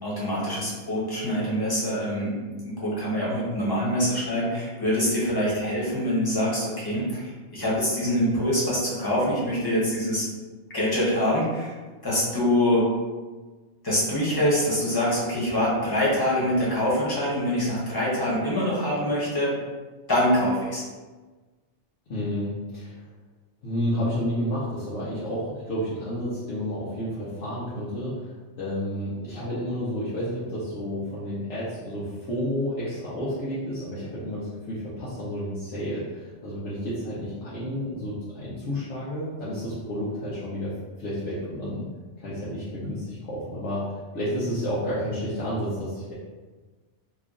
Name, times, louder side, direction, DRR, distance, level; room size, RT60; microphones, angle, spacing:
voice 1, 0.0-2.4 2.6-10.2 10.7-11.7 12.0-12.9 13.8-19.5 20.1-20.8, equal, 20° left, -7 dB, 1.0 m, -25 dB
voice 2, 22.1-23.0 23.6-41.9 42.2-43.9 44.1-46.1, equal, 80° left, -10 dB, 1.1 m, -31 dB
3.0 x 2.4 x 3.6 m, 1.3 s
omnidirectional pair, 1.2 m